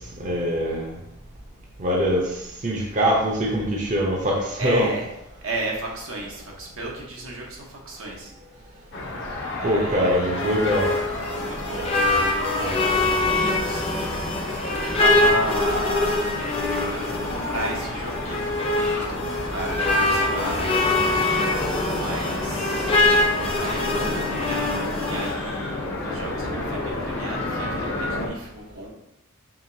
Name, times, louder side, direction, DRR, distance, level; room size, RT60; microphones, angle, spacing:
voice 1, 0.2-0.9 1.8-2.3 2.6-4.9 9.6-10.9, equal, 40° right, -2 dB, 0.7 m, -23 dB
voice 2, 4.6-5.1 5.4-9.0 9.6-10.6 11.4-14.1 14.8-18.4 18.9-28.9, right 2 dB, 85° right, -2 dB, 1.0 m, -34 dB
sound 1, 8.9-28.3, left 2 dB, 60° left, 0.9 m, -31 dB
sound 2, 10.0-25.3, left 2 dB, 30° left, 0.6 m, -24 dB
4.8 x 3.1 x 2.7 m, 0.85 s
head